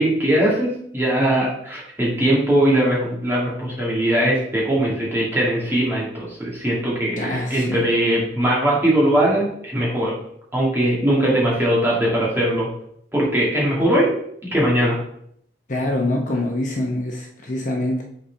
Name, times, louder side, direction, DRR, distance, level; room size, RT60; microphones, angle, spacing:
voice 1, 0.0-10.1 10.5-12.7 13.1-14.2 14.4-15.0, right 1 dB, 15° right, -6 dB, 2.3 m, -20 dB
voice 2, 7.2-7.9 15.7-18.0, left 1 dB, 45° left, 0 dB, 0.9 m, -25 dB
8.2 x 4.2 x 3.4 m, 0.69 s
head